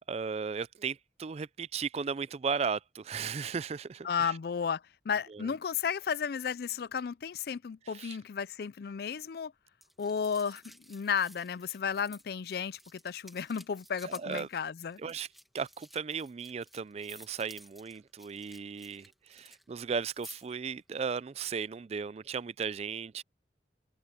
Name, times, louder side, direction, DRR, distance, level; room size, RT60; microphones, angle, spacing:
voice 1, 0.1-4.3 5.3-5.5 7.9-8.2 14.0-14.5 15.0-15.3 15.5-23.2, right 6 dB, 35° right, 0.3 m, -36 dB
voice 2, 4.0-9.5 10.0-15.0, left 6 dB, 60° left, 0.4 m, -33 dB
sound 1, 9.8-19.6 19.9-20.6 21.0-21.1, equal, ahead, 1.6 m, -54 dB
head